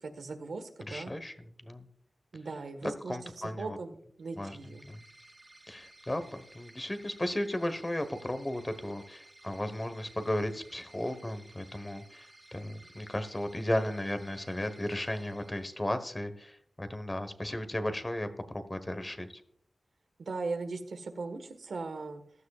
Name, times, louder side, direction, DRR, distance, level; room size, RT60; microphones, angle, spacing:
voice 1, 0.0-1.1 2.3-4.8 20.2-22.2, right 3 dB, 85° right, 8 dB, 1.4 m, -39 dB
voice 2, 0.9-1.3 1.6-1.9 2.8-3.8 4.4-4.6 4.9-5.0 5.7-19.4, left 1 dB, 20° left, 9 dB, 1.2 m, -35 dB
sound 1, 4.2-16.2, right 1 dB, 25° right, 2.3 m, -57 dB
15.0 x 12.5 x 2.4 m, 0.62 s
wide cardioid pair, 110°, 0 cm